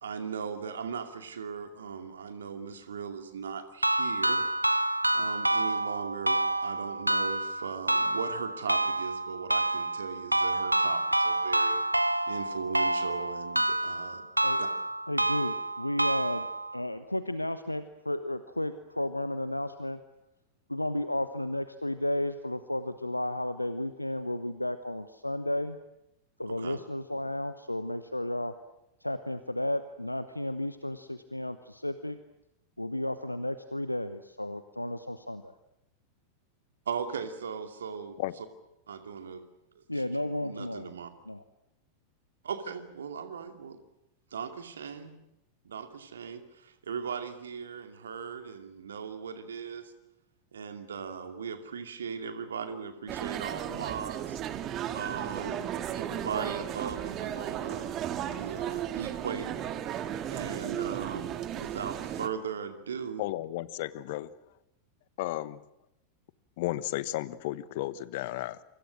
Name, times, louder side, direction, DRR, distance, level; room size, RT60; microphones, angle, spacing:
voice 1, 0.0-4.5 5.1-11.8 12.3-14.2 14.6-14.7 26.5-26.8 36.9-38.2 38.9-39.4 39.8-40.0 40.4-41.1 42.4-43.8 44.3-45.1 45.6-49.9 50.5-54.4 54.9-57.9 58.3-59.6 60.3-63.2, right 6 dB, 65° right, 7 dB, 2.5 m, -38 dB
sound 1, 3.8-16.8, right 1 dB, 85° right, 0.9 m, -28 dB
voice 2, 15.1-16.5 16.7-20.0 20.7-25.8 26.4-28.5 29.0-32.2 32.8-35.5 39.9-40.9 41.3-41.4, left 1 dB, 85° left, 12 dB, 0.9 m, -33 dB
sound 2, 53.1-62.3, right 10 dB, 35° right, 1.8 m, -35 dB
voice 3, 63.2-64.3 65.2-65.6 66.6-68.6, left 16 dB, 50° left, 17 dB, 1.1 m, -33 dB
29.0 x 25.0 x 6.4 m, 0.86 s
figure-of-eight pair, 90°, 0 cm